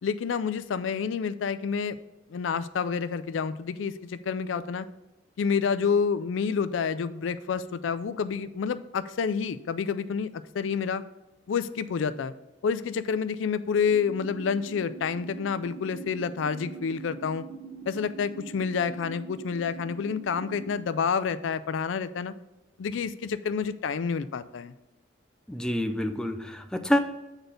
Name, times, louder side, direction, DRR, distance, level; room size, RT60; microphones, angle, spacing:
voice 1, 0.0-2.0 2.3-4.9 5.4-11.0 11.5-12.3 12.6-17.4 17.9-22.3 22.8-24.7, left 6 dB, 85° left, 13 dB, 0.4 m, -29 dB
sound 1, 13.9-20.7, right 4 dB, 35° right, 1.1 m, -43 dB
voice 2, 25.5-27.0, left 1 dB, 5° left, 7 dB, 0.4 m, -27 dB
8.1 x 4.0 x 5.1 m, 1.0 s
head